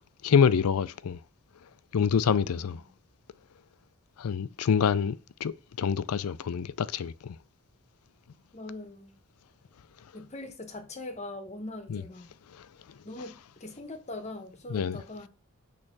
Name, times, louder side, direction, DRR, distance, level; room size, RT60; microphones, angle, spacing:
voice 1, 0.2-1.2 1.9-2.8 4.2-7.4 11.9-12.0 14.7-15.0, left 6 dB, 85° left, 0.4 m, -26 dB
voice 2, 8.5-9.1 10.1-12.3 13.0-15.3, left 2 dB, 30° left, 1.1 m, -42 dB
6.4 x 3.3 x 6.0 m
head